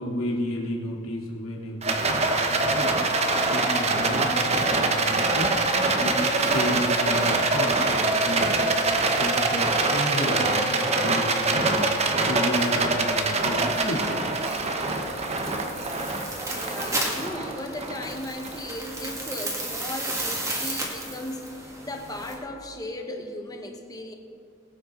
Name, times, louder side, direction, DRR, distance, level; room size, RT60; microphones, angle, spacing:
voice 1, 0.0-3.0 3.4-5.6 6.0-8.7 9.2-11.8 12.2-14.1, left 1 dB, 90° left, -3 dB, 2.9 m, -32 dB
Rattle, 1.8-19.2, right 3 dB, 30° right, 1.0 m, -24 dB
sound 1, 13.2-22.3, right 1 dB, 15° right, 2.1 m, -34 dB
voice 2, 16.5-24.1, left 1 dB, 20° left, 3 dB, 1.2 m, -36 dB
21.0 x 9.0 x 3.8 m, 2.5 s
head